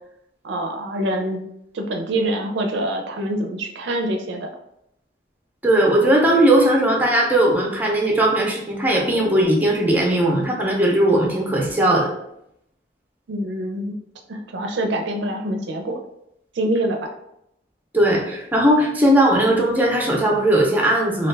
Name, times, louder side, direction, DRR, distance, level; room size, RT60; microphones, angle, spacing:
voice 1, 0.4-1.4 1.7-4.5 13.3-14.0 14.3-16.0 16.5-17.1, right 1 dB, 85° right, 3 dB, 0.4 m, -25 dB
voice 2, 5.6-12.1 17.9-21.3, right 1 dB, 10° right, -1 dB, 0.5 m, -18 dB
2.3 x 2.2 x 3.2 m, 0.79 s
head